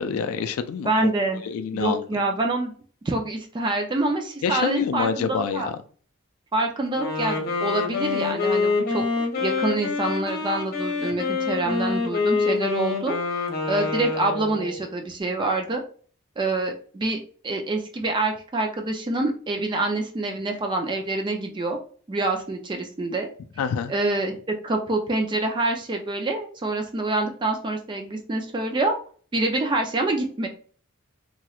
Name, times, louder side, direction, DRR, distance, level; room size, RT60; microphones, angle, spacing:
voice 1, 0.0-1.1 1.4-2.0 4.4-5.7 23.6-23.9, left 6 dB, 80° left, 10 dB, 0.3 m, -27 dB
voice 2, 0.8-1.4 1.7-2.7 3.1-5.7 6.5-15.8 16.4-17.2 17.4-21.8 22.1-23.3 23.9-29.0 29.3-30.5, right 2 dB, 20° right, 3 dB, 0.4 m, -26 dB
Wind instrument woodwind instrument, 6.9-14.9, left 4 dB, 45° left, 0.9 m, -26 dB
3.0 x 2.9 x 2.3 m, 0.43 s
head